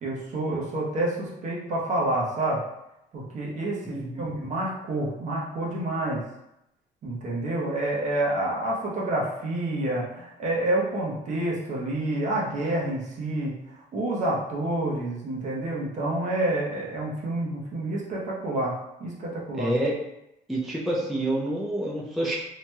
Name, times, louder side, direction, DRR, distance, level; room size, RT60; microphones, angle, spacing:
voice 1, 0.0-2.6 3.1-6.2 7.0-13.6 13.9-18.7 19.0-19.7, right 1 dB, 45° right, -4 dB, 0.9 m, -28 dB
voice 2, 3.9-4.2 19.5-19.9 20.5-22.3, right 1 dB, ahead, -4 dB, 0.4 m, -27 dB
2.9 x 2.7 x 2.2 m, 0.86 s
cardioid pair, 110°, 17 cm